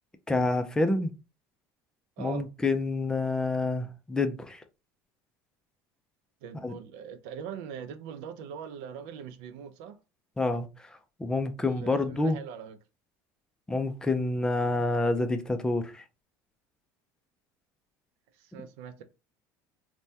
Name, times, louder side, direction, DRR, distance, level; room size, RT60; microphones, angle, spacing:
voice 1, 0.3-1.1 2.2-4.6 6.6-6.7 10.4-12.4 13.7-16.0, left 2 dB, 10° left, 0.4 m, -28 dB
voice 2, 2.2-2.5 6.4-10.0 11.6-12.8 18.3-19.0, right 7 dB, 80° right, 0.5 m, -42 dB
3.2 x 2.2 x 2.7 m
cardioid pair, 135°, 7 cm